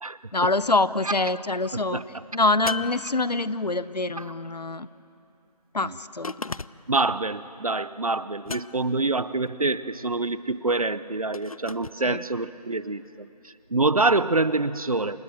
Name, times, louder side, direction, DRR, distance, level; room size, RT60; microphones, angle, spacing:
voice 1, 0.3-2.0 2.3-4.9 5.7-6.3 12.0-12.2, left 2 dB, 80° left, 16 dB, 0.9 m, -25 dB
sound 1, 2.7-3.8 6.2-7.0 8.5-9.1 11.3-12.0, left 3 dB, 60° left, 0.5 m, -36 dB
voice 2, 6.9-13.3 13.7-15.2, right 3 dB, 60° right, 16 dB, 0.7 m, -26 dB
28.5 x 15.0 x 9.1 m, 2.6 s
figure-of-eight pair, 175°, 21 cm